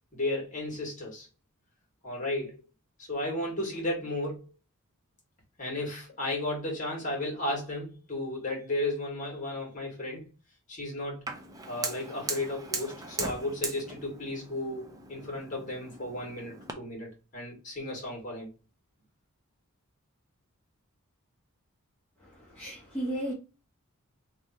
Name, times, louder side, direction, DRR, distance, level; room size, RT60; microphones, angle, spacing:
voice 1, 0.1-1.3 2.0-2.6 3.0-4.4 5.6-10.3 10.7-11.3 11.7-18.5, left 1 dB, 35° left, 1.8 m, -34 dB
Fire, 11.3-16.7, right 3 dB, 15° right, 0.4 m, -39 dB
voice 2, 22.2-23.3, right 1 dB, 5° left, 1.2 m, -35 dB
3.2 x 2.4 x 4.2 m
head